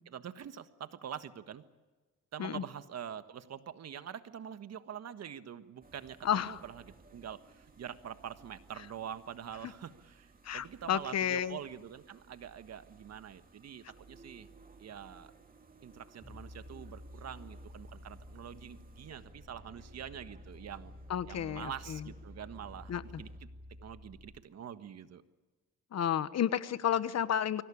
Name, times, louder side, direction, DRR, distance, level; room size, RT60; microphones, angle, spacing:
voice 1, 0.1-1.6 2.3-6.8 7.1-14.5 14.8-15.3 15.8-20.9 21.3-22.9 23.2-23.3 23.8-25.2, right 9 dB, 60° right, 11 dB, 1.5 m, -45 dB
sound 1, 5.8-23.4, right 4 dB, 30° right, 2.8 m, -59 dB
voice 2, 6.2-6.6 10.4-11.6 21.1-22.1 22.9-23.2 25.9-27.6, left 9 dB, 60° left, 15 dB, 1.2 m, -32 dB
sound 2, 16.2-24.4, left 1 dB, ahead, 5.4 m, -51 dB
24.0 x 17.5 x 8.6 m, 1.3 s
cardioid pair, 90°, 30 cm